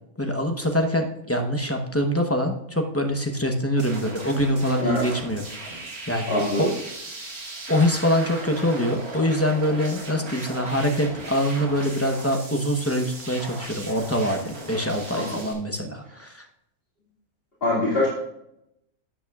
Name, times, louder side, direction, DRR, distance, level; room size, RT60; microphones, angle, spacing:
voice 1, 0.2-5.4 6.1-6.7 7.7-16.4, equal, 15° left, 4 dB, 0.6 m, -24 dB
sound 1, 3.8-15.5, right 2 dB, 75° right, 2.3 m, -38 dB
voice 2, 6.2-6.7 15.1-15.4 17.6-18.1, left 1 dB, 40° left, -6 dB, 2.2 m, -23 dB
12.5 x 8.7 x 2.4 m, 0.81 s
omnidirectional pair, 1.6 m